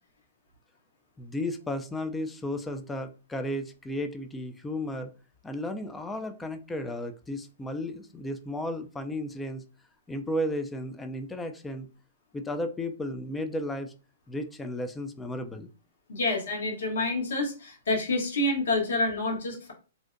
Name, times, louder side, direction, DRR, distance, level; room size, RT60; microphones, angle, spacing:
voice 1, 1.2-5.1 5.4-9.6 10.1-11.9 12.3-13.9 14.3-15.7, left 1 dB, 10° left, 8 dB, 0.3 m, -34 dB
voice 2, 16.1-19.7, left 2 dB, 75° left, 1 dB, 1.0 m, -28 dB
2.6 x 2.0 x 2.5 m, 0.34 s
hypercardioid pair, 130°, 0 cm